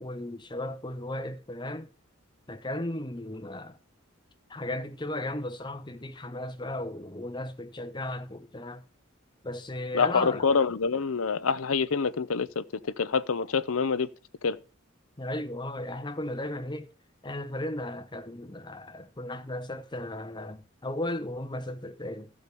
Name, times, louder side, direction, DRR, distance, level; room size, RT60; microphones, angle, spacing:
voice 1, 0.0-1.9 2.5-3.8 4.5-8.8 9.4-10.5 15.2-16.9 17.2-22.3, left 1 dB, 20° left, 0.9 m, -35 dB
voice 2, 9.9-14.1 14.4-14.6, left 5 dB, 85° left, 0.7 m, -26 dB
14.5 x 4.9 x 6.9 m
head